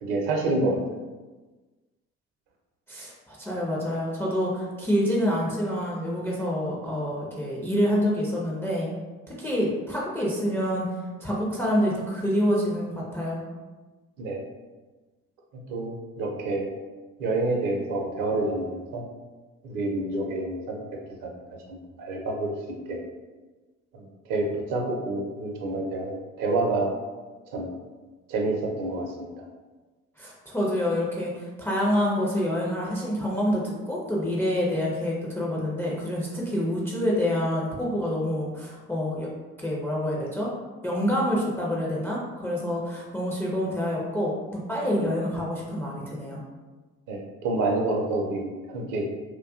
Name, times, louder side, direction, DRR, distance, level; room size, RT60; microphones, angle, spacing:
voice 1, 0.0-0.8 14.2-14.4 15.7-16.7 17.2-19.0 19.6-20.8 21.2-21.3 21.7-22.5 22.9-23.0 23.9-26.9 27.5-27.7 28.3-29.3 47.1-49.1, right 2 dB, 55° right, 1 dB, 0.6 m, -28 dB
voice 2, 2.9-8.9 9.3-10.9 11.2-13.4 30.2-39.3 39.6-40.5 40.8-44.3 44.7-46.4, equal, 5° left, -4 dB, 0.4 m, -27 dB
2.3 x 2.2 x 2.4 m, 1.2 s
figure-of-eight pair, 55°, 40 cm